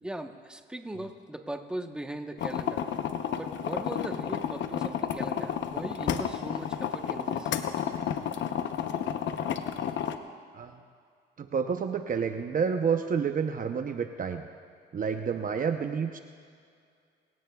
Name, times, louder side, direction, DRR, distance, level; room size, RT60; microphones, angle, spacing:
voice 1, 0.0-2.8 3.4-7.5, right 1 dB, 5° right, 5 dB, 1.1 m, -39 dB
sound 1, 2.4-10.2, left 8 dB, 70° left, 0.9 m, -31 dB
voice 2, 11.4-14.4 14.9-16.2, right 6 dB, 45° right, 6 dB, 0.8 m, -29 dB
27.5 x 17.0 x 2.4 m, 2.2 s
cardioid pair, 90°, 20 cm